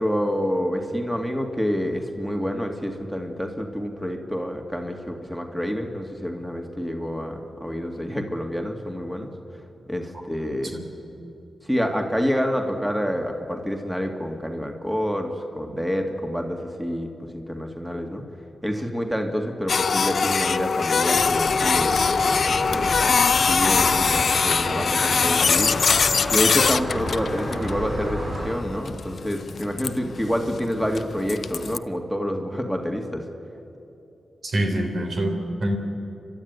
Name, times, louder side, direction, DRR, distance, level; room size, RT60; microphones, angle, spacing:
voice 1, 0.0-9.3 9.9-10.7 11.7-18.2 18.6-22.0 22.2-22.4 22.7-22.9 23.5-25.8 26.3-33.2, equal, 5° right, 3 dB, 2.4 m, -28 dB
Printer, 19.7-31.8, left 5 dB, 65° left, 0.5 m, -22 dB
sound 1, 21.1-28.6, right 1 dB, 50° right, 4.8 m, -31 dB
voice 2, 34.4-35.8, right 1 dB, 70° right, 3 dB, 3.4 m, -25 dB
29.5 x 12.0 x 9.7 m, 2.9 s
cardioid pair, 55°, 0 cm